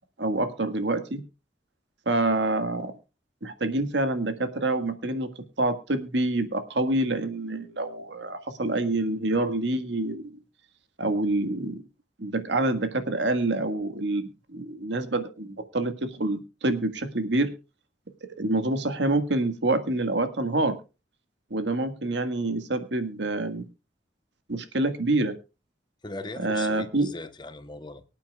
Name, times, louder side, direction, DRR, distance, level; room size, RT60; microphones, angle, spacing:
voice 1, 0.2-1.2 2.1-2.9 3.4-5.3 5.6-10.4 11.0-11.8 12.2-17.5 18.4-20.8 21.5-23.6 24.5-25.4 26.4-27.1, right 2 dB, 85° right, 8 dB, 1.6 m, -27 dB
voice 2, 26.0-28.0, left 2 dB, 25° left, 11 dB, 0.9 m, -39 dB
24.0 x 8.8 x 2.3 m, 0.30 s
head